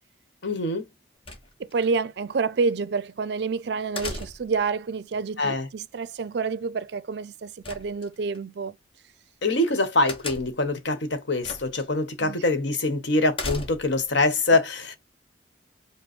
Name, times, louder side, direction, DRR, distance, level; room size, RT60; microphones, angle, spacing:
voice 1, 0.4-0.8 5.4-5.7 9.4-14.9, left 2 dB, 65° left, 1.1 m, -24 dB
sound 1, 1.3-1.9 4.0-4.6 7.6-8.4 10.1-10.7 11.4-11.9 12.2-12.3 13.3-14.0, left 2 dB, 30° left, 1.1 m, -35 dB
voice 2, 1.6-8.8 12.2-12.4, right 4 dB, 55° right, 0.4 m, -28 dB
5.2 x 2.1 x 4.3 m
head